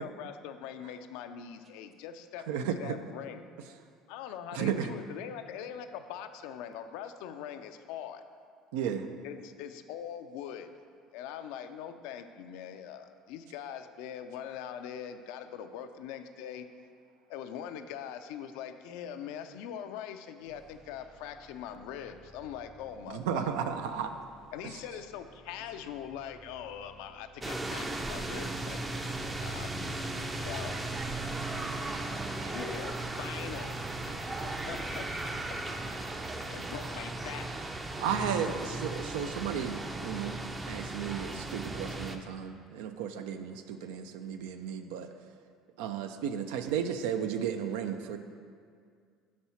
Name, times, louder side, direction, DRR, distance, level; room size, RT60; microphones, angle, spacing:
voice 1, 0.0-3.5 4.1-8.2 9.2-10.7 11.1-16.7 17.3-23.8 24.5-30.8 32.5-32.9 33.2-33.8 34.7-35.1 36.5-37.5 38.4-38.8, left 9 dB, 75° left, 9 dB, 0.3 m, -42 dB
voice 2, 2.5-3.0 4.5-4.9 8.7-9.1 23.1-24.1 24.6-24.7 38.0-40.4 40.7-45.1 45.8-48.2, right 8 dB, 85° right, 8 dB, 0.3 m, -34 dB
sound 1, 20.5-30.1, right 1 dB, 65° right, 1.4 m, -58 dB
sound 2, 27.4-42.2, right 2 dB, 20° right, 0.5 m, -36 dB
voice 3, 30.5-32.5 32.9-33.0 34.3-35.1, right 3 dB, 35° right, 4 dB, 0.8 m, -49 dB
4.7 x 4.2 x 5.6 m, 2.2 s
supercardioid pair, 80°, 0 cm